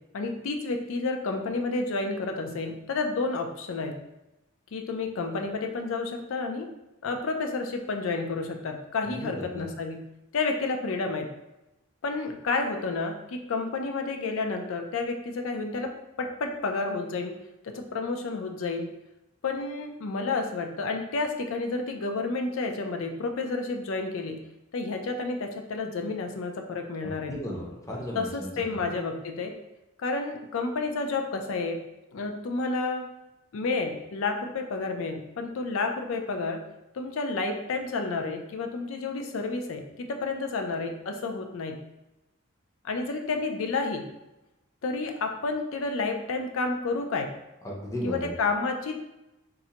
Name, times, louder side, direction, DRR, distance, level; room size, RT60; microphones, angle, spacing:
voice 1, 0.1-4.0 4.7-6.7 7.0-10.0 10.3-11.3 12.0-15.9 16.2-17.3 17.6-18.9 19.4-24.4 24.7-27.3 28.1-29.5 30.0-31.8 32.1-33.0 33.5-36.6 36.9-41.8 42.8-44.0 44.8-47.3 48.0-49.0, left 3 dB, 70° left, 4 dB, 0.4 m, -30 dB
voice 2, 9.1-9.6 27.0-28.5 47.6-48.3, equal, 15° left, -2 dB, 0.6 m, -35 dB
3.7 x 2.1 x 2.8 m, 0.96 s
head